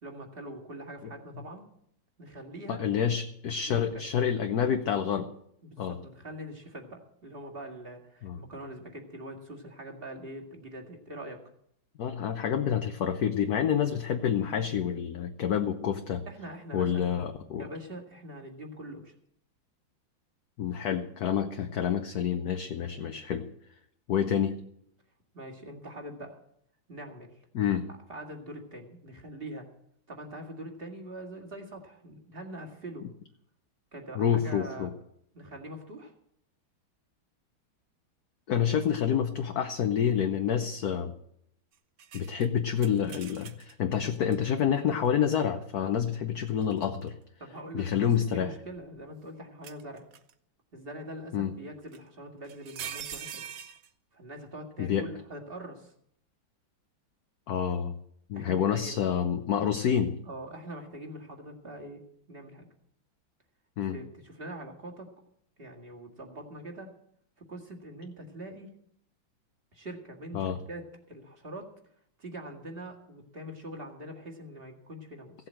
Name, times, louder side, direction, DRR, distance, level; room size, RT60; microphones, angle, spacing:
voice 1, 0.0-1.7 2.2-2.8 3.7-4.1 5.6-11.4 16.3-17.1 17.6-19.1 25.3-26.4 26.9-27.3 28.1-29.6 30.1-33.1 33.9-34.9 35.3-36.1 47.4-50.0 50.7-53.4 54.1-55.9 58.3-59.0 60.3-62.0 62.3-62.7 63.9-65.1 65.6-66.9 67.4-68.7 69.7-71.7 72.2-75.3, right 1 dB, 30° right, 2 dB, 2.2 m, -43 dB
voice 2, 2.7-5.3 5.8-6.0 8.2-8.4 12.0-16.2 16.7-17.7 20.6-23.5 24.1-24.6 27.5-27.8 34.1-34.9 38.5-41.1 42.1-47.2 47.7-48.5 51.3-51.5 54.8-55.1 57.5-57.9 58.3-60.1 63.8-64.0 70.3-70.6, left 8 dB, 60° left, 6 dB, 1.2 m, -28 dB
sound 1, 42.0-43.7 44.3-44.4 46.5-47.1 47.9-49.0 49.6-50.3 51.9-52.0 52.4-53.9, right 9 dB, 60° right, 0.9 m, -43 dB
16.5 x 7.9 x 7.5 m, 0.72 s
omnidirectional pair, 2.2 m